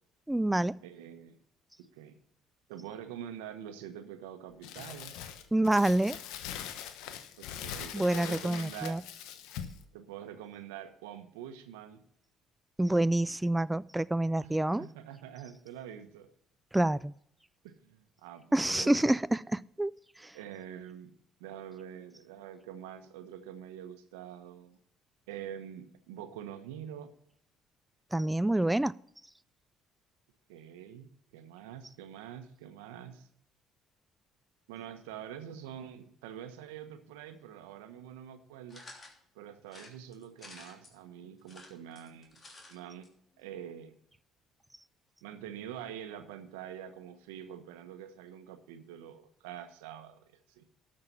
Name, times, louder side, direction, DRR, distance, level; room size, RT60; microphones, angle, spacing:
voice 1, 0.3-0.8 5.5-6.2 7.9-9.0 12.8-14.9 16.7-17.1 18.5-19.9 20.2-20.3 28.1-29.0, right 1 dB, 10° right, 0.3 m, -27 dB
voice 2, 0.8-1.4 1.8-2.2 2.7-5.2 7.4-9.0 9.9-12.0 14.4-16.3 17.6-19.2 20.3-21.1 21.4-24.8 25.3-27.1 30.5-33.3 34.7-38.8 39.3-43.1 43.4-43.9 45.2-50.6, right 9 dB, 90° right, 1.1 m, -45 dB
Crumpling crinkling, 4.6-9.8, left 9 dB, 75° left, 1.0 m, -42 dB
sound 1, 38.7-39.2 39.7-40.9 41.4-42.7 43.0-43.1 43.3-43.4, left 2 dB, 35° left, 3.2 m, -51 dB
12.5 x 6.6 x 5.6 m
supercardioid pair, 70°, 0 cm